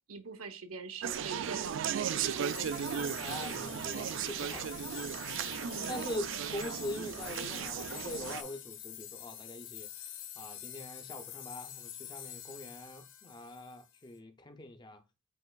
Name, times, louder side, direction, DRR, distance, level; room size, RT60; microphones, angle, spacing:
voice 1, 0.1-3.0 5.6-6.0, right 4 dB, 85° right, 0.8 m, -43 dB
Conversation, 1.0-8.4, right 8 dB, 60° right, 0.3 m, -36 dB
sound 1, 2.0-14.1, left 11 dB, 60° left, 1.3 m, -46 dB
voice 2, 3.2-5.2 5.9-10.1 10.4-15.0, left 1 dB, 20° left, 0.5 m, -43 dB
7.8 x 3.0 x 2.2 m
head